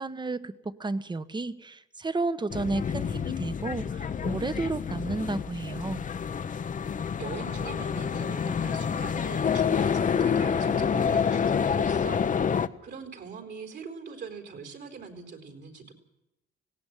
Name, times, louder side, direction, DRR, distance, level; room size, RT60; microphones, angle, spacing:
voice 1, 0.0-6.0, right 3 dB, 20° right, 14 dB, 1.1 m, -32 dB
sound 1, 2.5-12.7, left 7 dB, 40° left, 0.9 m, -28 dB
voice 2, 7.2-12.2 12.4-15.9, right 5 dB, 60° right, 6 dB, 4.3 m, -42 dB
18.5 x 17.0 x 9.1 m, 0.92 s
cardioid pair, 90°, 20 cm